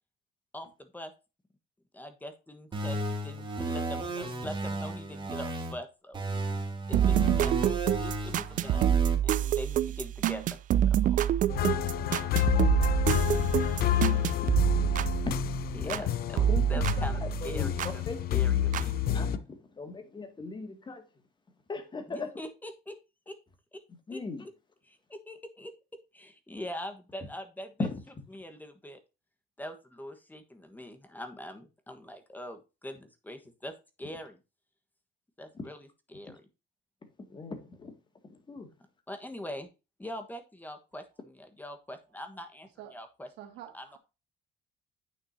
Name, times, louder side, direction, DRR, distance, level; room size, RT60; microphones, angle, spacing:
voice 1, 0.5-1.1 1.9-6.2 6.9-8.8 9.2-10.6 10.8-11.3 15.7-19.0 22.1-23.0 23.3-23.4 23.7-23.8 24.1-24.2 24.8-25.7 26.1-27.9 28.3-29.0 29.6-34.4 35.4-36.4 39.1-39.7 40.0-43.3 43.7-44.0, left 1 dB, 10° left, 1.3 m, -43 dB
sound 1, 2.7-5.7 6.1-9.1, right 2 dB, 30° right, 2.9 m, -33 dB
sound 2, 6.9-16.1 16.4-18.0 18.7-18.8, right 10 dB, 50° right, 0.5 m, -27 dB
sound 3, 11.5-19.4, left 11 dB, 65° left, 0.7 m, -29 dB
voice 2, 11.9-12.7 15.8-16.1 16.5-16.7 17.4-17.7 18.1-18.4 19.1-19.3 19.8-21.0 21.7-22.3 24.1-24.4 27.8-27.9 37.3-37.9 38.5-38.7, left 3 dB, 25° left, 2.1 m, -38 dB
voice 3, 43.4-44.0, right 11 dB, 85° right, 2.1 m, -47 dB
9.4 x 6.2 x 2.7 m
cardioid pair, 110°, 17 cm